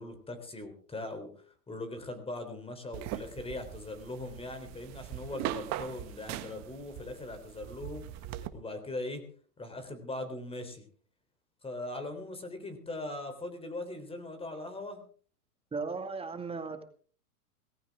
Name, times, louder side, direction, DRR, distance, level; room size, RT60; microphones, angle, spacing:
voice 1, 0.0-8.0 8.5-9.2 9.6-10.9 11.6-15.0, left 2 dB, 10° left, 8 dB, 3.6 m, -40 dB
sound 1, 2.9-8.5, right 12 dB, 35° right, 1.6 m, -40 dB
voice 2, 15.7-16.8, right 4 dB, 10° right, 7 dB, 2.2 m, -36 dB
19.0 x 15.5 x 3.6 m, 0.43 s
hypercardioid pair, 125°, 45 cm